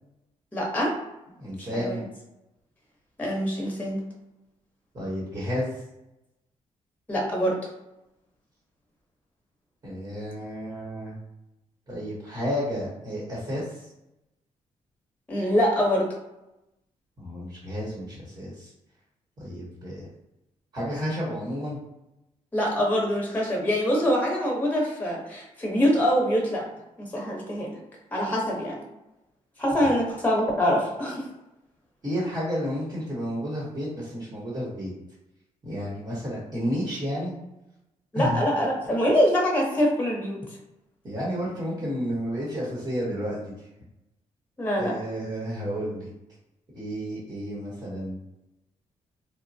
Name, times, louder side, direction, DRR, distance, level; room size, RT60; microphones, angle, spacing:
voice 1, 0.5-0.9 1.6-2.0 3.2-4.1 7.1-7.6 15.3-16.1 22.5-26.7 27.0-27.8 28.1-28.9 29.6-31.3 38.1-40.4 44.6-44.9, equal, 15° left, -2 dB, 0.8 m, -24 dB
voice 2, 1.4-2.0 4.9-5.8 9.8-11.2 11.9-13.9 17.2-18.7 19.4-20.1 20.7-21.8 29.8-29.9 32.0-34.9 35.6-37.3 38.1-38.4 41.0-43.4 44.8-46.1 46.7-48.2, equal, 30° right, -6 dB, 1.0 m, -31 dB
3.0 x 2.1 x 2.6 m, 0.91 s
cardioid pair, 105°, 12 cm